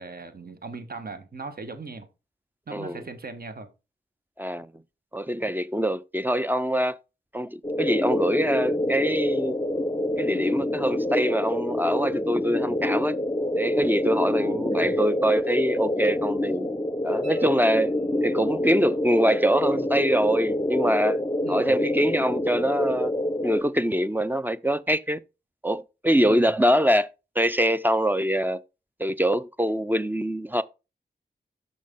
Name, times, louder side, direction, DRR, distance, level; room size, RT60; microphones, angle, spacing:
voice 1, 0.0-2.1 2.7-3.7 14.4-14.9 21.4-21.7 26.2-26.5, right 3 dB, 50° right, 1.4 m, -39 dB
voice 2, 2.7-3.0 4.4-4.7 5.1-7.0 7.3-9.6 10.2-13.2 13.6-16.7 17.0-17.9 18.2-21.2 21.5-23.1 23.4-25.2 25.6-27.1 27.4-28.6 29.0-30.6, equal, 10° right, 0.5 m, -24 dB
sound 1, 7.6-23.6, left 1 dB, 20° left, 0.8 m, -26 dB
sound 2, 17.2-18.6 21.3-21.4, right 4 dB, 80° right, 4.6 m, -54 dB
6.2 x 5.8 x 3.6 m
cardioid pair, 45°, 20 cm